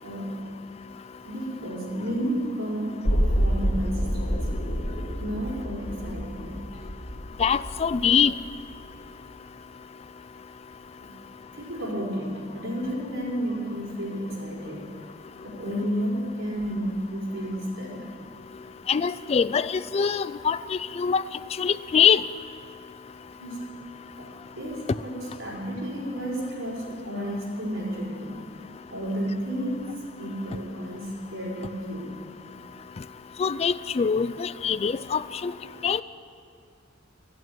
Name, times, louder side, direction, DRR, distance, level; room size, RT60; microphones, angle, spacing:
voice 1, 0.0-0.5 1.2-4.7 5.2-6.8 11.0-11.2 11.5-14.9 15.4-18.1 23.3-23.6 24.2-28.4 28.9-29.8 30.2-32.1, equal, 85° right, -5 dB, 4.9 m, -32 dB
sound 1, 3.0-9.0 9.3-9.4, equal, 75° left, 2.4 m, -28 dB
voice 2, 7.4-8.3 18.9-21.2 21.6-22.2 33.4-35.5 35.8-36.0, left 6 dB, 35° left, 15 dB, 0.3 m, -23 dB
14.0 x 8.5 x 9.2 m, 2.3 s
head